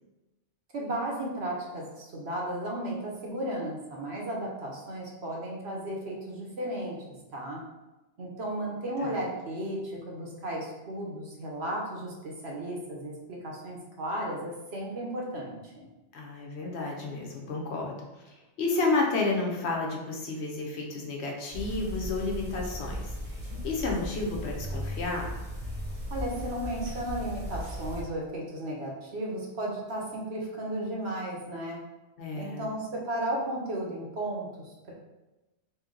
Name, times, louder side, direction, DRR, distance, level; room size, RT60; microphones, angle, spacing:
voice 1, 0.7-7.0 7.3-7.6 8.2-15.9 26.1-31.8 32.3-34.9, right 1 dB, 65° right, -2 dB, 1.1 m, -34 dB
voice 2, 16.1-25.3 32.2-32.7, left 3 dB, 65° left, 0 dB, 1.0 m, -31 dB
sound 1, 21.5-28.0, equal, 35° right, 0.9 m, -36 dB
3.2 x 2.9 x 3.7 m, 1.1 s
omnidirectional pair, 1.2 m